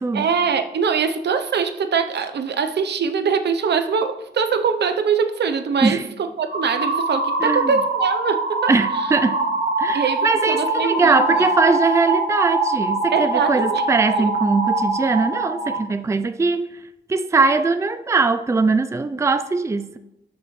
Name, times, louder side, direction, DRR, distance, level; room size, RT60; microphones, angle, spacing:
voice 1, 0.1-9.1 9.9-11.5 13.1-13.8 14.2-14.3, right 6 dB, 75° right, 0.7 m, -23 dB
sound 1, 6.5-15.8, right 2 dB, 55° right, 1.7 m, -23 dB
voice 2, 7.4-7.7 8.7-9.4 9.8-16.8 17.1-20.0, right 4 dB, 15° right, 0.4 m, -21 dB
13.0 x 6.0 x 3.2 m
wide cardioid pair, 95°, 18 cm